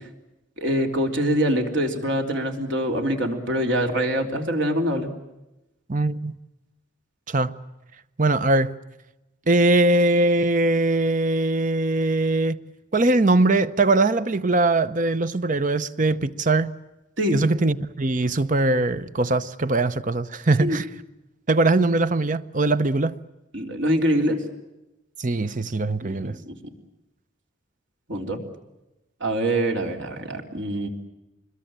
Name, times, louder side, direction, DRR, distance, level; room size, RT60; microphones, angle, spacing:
voice 1, 0.6-5.1 17.2-17.4 20.6-20.8 23.5-24.4 26.0-26.5 28.1-28.4 29.2-30.9, equal, 65° right, 3.7 m, -24 dB
voice 2, 5.9-6.4 7.3-7.5 8.2-8.7 9.5-12.6 12.9-16.7 17.3-20.9 21.5-23.1 25.2-26.4, right 2 dB, 40° right, 0.8 m, -21 dB
26.0 x 22.0 x 8.9 m
head